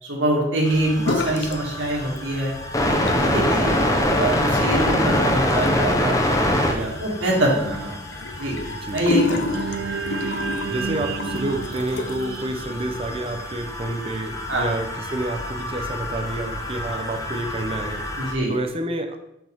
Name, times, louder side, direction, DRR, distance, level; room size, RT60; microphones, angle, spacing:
voice 1, 0.0-2.5 2.9-3.8 4.2-8.6 8.9-9.6 14.5-14.7 18.2-18.5, right 1 dB, 90° right, -3 dB, 2.2 m, -25 dB
sound 1, 0.7-18.3, left 1 dB, 20° left, 0.7 m, -26 dB
sound 2, 1.0-1.6 1.9-2.5 2.9-12.4, left 3 dB, 70° left, 0.7 m, -30 dB
voice 2, 8.7-9.0 10.7-18.0 18.5-19.2, right 1 dB, 30° right, 6 dB, 0.6 m, -29 dB
sound 3, 9.5-13.9, right 6 dB, 65° right, 0.4 m, -32 dB
6.2 x 6.0 x 3.5 m, 0.82 s
head